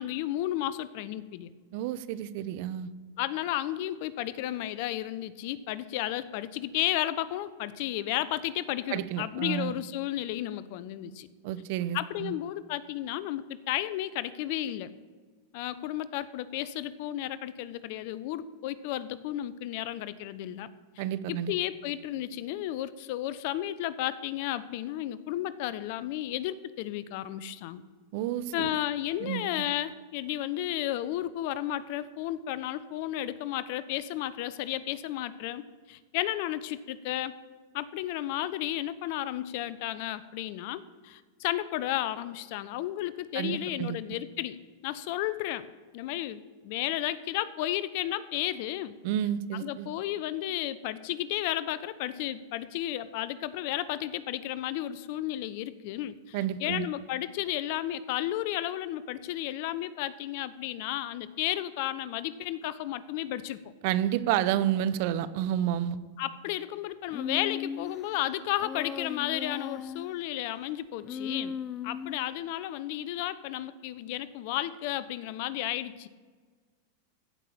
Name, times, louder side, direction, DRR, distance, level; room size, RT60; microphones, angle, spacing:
voice 1, 0.0-1.5 3.2-11.3 11.9-14.9 15.5-20.7 21.0-27.8 28.5-37.3 37.7-44.6 44.8-45.7 45.9-48.9 49.5-63.6 66.2-71.6 71.8-76.1, left 13 dB, 60° left, 16 dB, 0.7 m, -33 dB
voice 2, 1.7-2.9 8.9-9.7 11.4-12.3 21.0-21.5 28.1-28.7 29.2-29.4 43.3-44.0 49.0-49.9 56.3-56.9 63.8-66.0, right 11 dB, 60° right, 15 dB, 0.8 m, -30 dB
Human voice, 67.1-68.1 68.6-70.2 71.0-72.3, left 7 dB, 30° left, 0.6 m, -37 dB
15.0 x 5.9 x 8.6 m, 1.5 s
hypercardioid pair, 105°, 0 cm